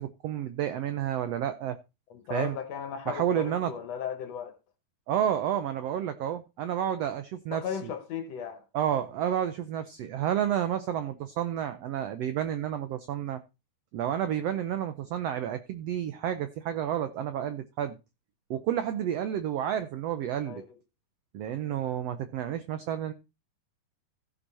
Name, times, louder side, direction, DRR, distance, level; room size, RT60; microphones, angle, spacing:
voice 1, 0.0-1.8 2.3-2.6 3.1-3.7 5.1-7.6 8.7-13.4 13.9-18.0 18.5-20.6 21.3-23.1, right 10 dB, 80° right, 1.4 m, -30 dB
voice 2, 2.1-4.6 7.5-8.6 20.4-20.8, left 8 dB, 65° left, 1.8 m, -36 dB
15.5 x 5.4 x 4.2 m
omnidirectional pair, 3.8 m